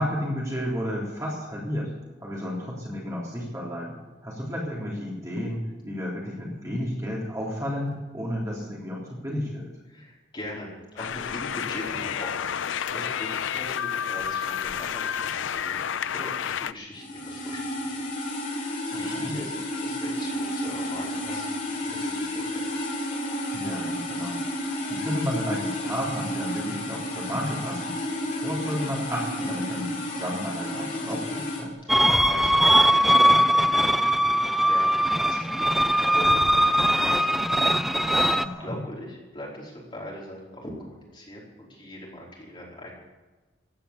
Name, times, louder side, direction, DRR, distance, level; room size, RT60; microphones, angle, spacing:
voice 1, 0.0-1.9 2.2-9.7 19.1-19.3 23.5-27.9 28.4-31.7 38.4-38.8, equal, 15° right, -4 dB, 3.4 m, -32 dB
voice 2, 9.9-12.6 12.9-18.0 18.3-22.7 31.8-37.7 38.6-42.9, left 1 dB, 25° left, -4 dB, 4.9 m, -41 dB
sound 1, 11.0-16.7, left 8 dB, 85° left, 0.5 m, -30 dB
sound 2, 17.0-31.6, left 1 dB, 45° left, 4.0 m, -31 dB
sound 3, 31.9-38.5, equal, ahead, 0.4 m, -20 dB
15.5 x 10.5 x 8.4 m, 1.2 s
head